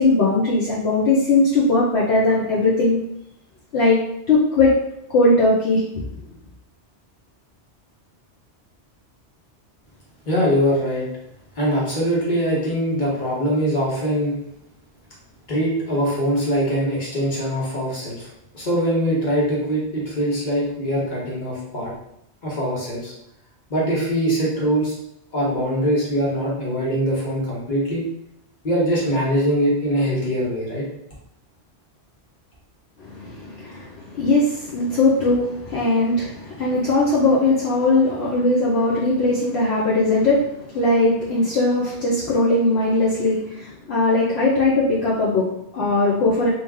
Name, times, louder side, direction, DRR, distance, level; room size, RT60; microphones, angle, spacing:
voice 1, 0.0-3.0 3.7-4.0 4.3-4.8 5.1-5.8 33.0-46.5, left 2 dB, 70° left, -6 dB, 1.0 m, -19 dB
voice 2, 10.3-11.0 11.5-14.4 15.5-18.3 18.5-21.9 22.4-23.1 23.7-24.9 25.3-28.0 28.6-30.8, equal, 45° left, -5 dB, 1.3 m, -22 dB
3.1 x 2.7 x 3.5 m, 0.78 s
omnidirectional pair, 1.2 m